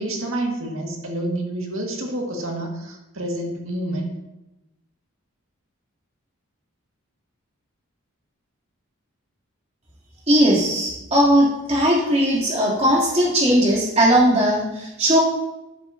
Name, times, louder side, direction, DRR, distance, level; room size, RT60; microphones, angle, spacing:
voice 1, 0.0-4.1, right 1 dB, 70° right, 1 dB, 2.1 m, -28 dB
voice 2, 10.3-15.2, equal, 30° right, -5 dB, 3.2 m, -18 dB
12.5 x 9.7 x 2.9 m, 0.97 s
head